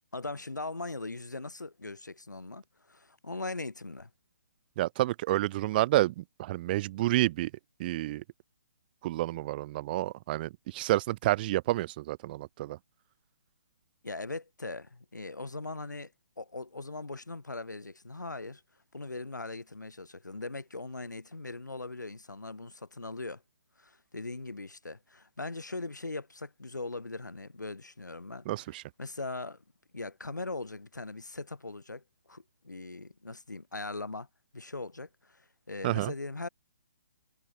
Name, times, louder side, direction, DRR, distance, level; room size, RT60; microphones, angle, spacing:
voice 1, 0.1-4.1 14.0-16.1 16.4-18.6 18.9-23.4 23.8-28.5 29.0-29.6 29.9-34.3 34.5-36.5, left 3 dB, 80° left, 5.8 m, -40 dB
voice 2, 4.8-7.5 7.8-8.2 9.0-12.8 28.5-28.8 35.8-36.1, right 16 dB, 30° right, 0.9 m, -29 dB
figure-of-eight pair, 135°, 10 cm